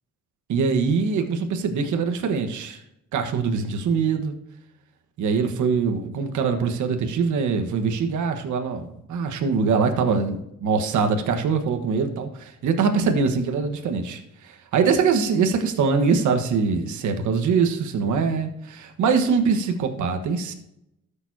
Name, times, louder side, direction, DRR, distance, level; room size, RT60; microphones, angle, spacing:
voice 1, 0.5-2.8 3.1-4.3 5.2-20.5, right 5 dB, 75° right, 5 dB, 1.4 m, -23 dB
13.0 x 7.0 x 2.8 m, 0.82 s
cardioid pair, 90°, 30 cm